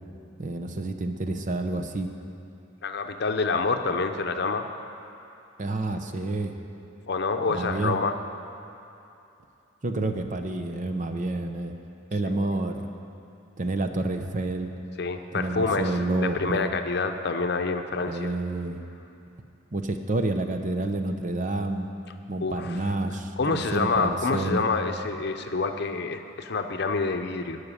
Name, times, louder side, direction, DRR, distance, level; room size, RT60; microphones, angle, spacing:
voice 1, 0.4-2.1 5.6-6.6 7.5-8.0 9.8-11.7 12.1-12.9 13.6-14.7 15.3-16.7 18.1-18.8 19.7-21.9 22.3-24.6, right 2 dB, 40° right, 6 dB, 0.7 m, -29 dB
voice 2, 2.8-4.7 7.1-8.1 12.2-12.5 15.0-18.3 22.4-22.8 23.4-27.6, left 4 dB, 55° left, 6 dB, 0.7 m, -27 dB
12.0 x 6.5 x 9.7 m, 2.8 s
head